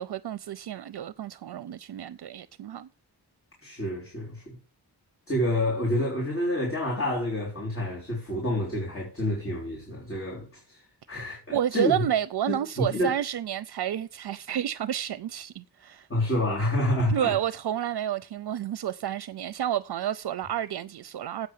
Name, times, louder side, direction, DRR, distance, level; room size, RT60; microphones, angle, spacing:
voice 1, 0.0-2.9 11.5-16.1 17.1-21.5, right 10 dB, 70° right, 0.5 m, -30 dB
voice 2, 3.6-4.6 5.3-11.9 12.5-13.2 16.1-17.4, left 1 dB, 30° left, 3.4 m, -28 dB
8.1 x 6.6 x 7.3 m
wide cardioid pair, 80°, 41 cm